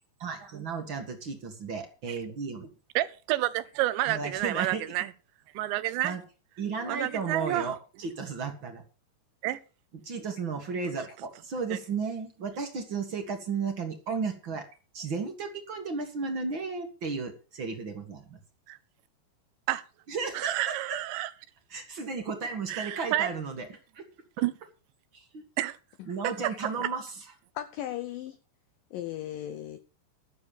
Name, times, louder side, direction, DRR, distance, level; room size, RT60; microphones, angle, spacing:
voice 1, 0.2-2.7 4.1-4.9 6.0-6.2 6.6-8.8 10.0-14.6 14.9-18.4 20.1-21.0 21.7-24.0 25.1-25.4 26.1-27.2, right 5 dB, 50° right, 1.5 m, -34 dB
voice 2, 3.0-5.1 5.5-6.1 6.9-7.7 9.4-9.6 11.7-11.8 18.7-18.8 19.7-19.8 20.3-21.3 22.7-23.3 24.4-24.5 25.6-25.8, right 16 dB, 90° right, 3.1 m, -29 dB
voice 3, 27.6-28.4 28.9-29.8, left 12 dB, 90° left, 1.9 m, -37 dB
13.0 x 7.1 x 6.9 m
omnidirectional pair, 5.0 m